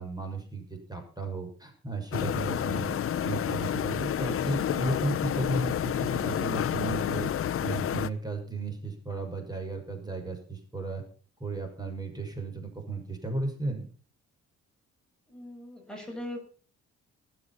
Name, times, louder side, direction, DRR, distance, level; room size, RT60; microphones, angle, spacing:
voice 1, 0.0-2.9 3.2-7.3 7.6-11.0 11.4-13.9, right 2 dB, 15° right, 4 dB, 6.4 m, -34 dB
sound 1, 2.1-8.1, left 9 dB, 45° left, 0.8 m, -29 dB
voice 2, 2.7-3.0 15.3-16.5, left 1 dB, 5° left, -1 dB, 7.0 m, -40 dB
20.0 x 8.1 x 5.8 m, 0.41 s
cardioid pair, 90°, 30 cm